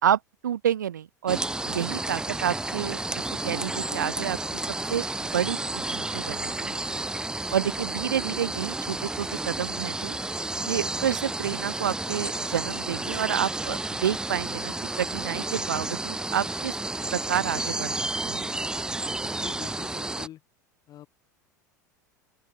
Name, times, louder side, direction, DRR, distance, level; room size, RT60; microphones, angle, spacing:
voice 1, 0.0-6.8 7.5-10.2 10.7-16.8 17.1-17.9 18.2-18.5, right 10 dB, 75° right, 1.8 m, -29 dB
sound 1, 1.3-20.3, right 2 dB, 10° right, 1.5 m, -31 dB
sound 2, 1.8-10.4, right 33 dB, 55° right, 7.7 m, -58 dB
voice 2, 19.2-20.4 20.9-21.1, left 12 dB, 40° left, 4.7 m, -44 dB
open air
figure-of-eight pair, 80°, 10 cm